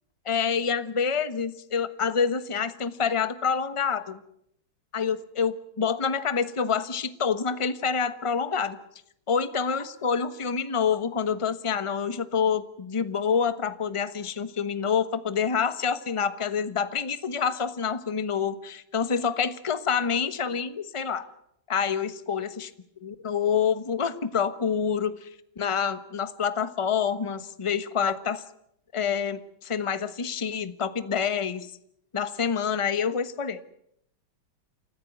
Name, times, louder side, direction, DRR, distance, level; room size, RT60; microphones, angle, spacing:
voice 1, 0.2-4.2 4.9-8.8 9.3-21.3 21.7-22.7 23.0-25.3 25.6-28.4 28.9-31.7 32.1-33.6, left 6 dB, 20° left, 12 dB, 0.9 m, -27 dB
28.5 x 15.0 x 9.2 m, 0.74 s
omnidirectional pair, 2.2 m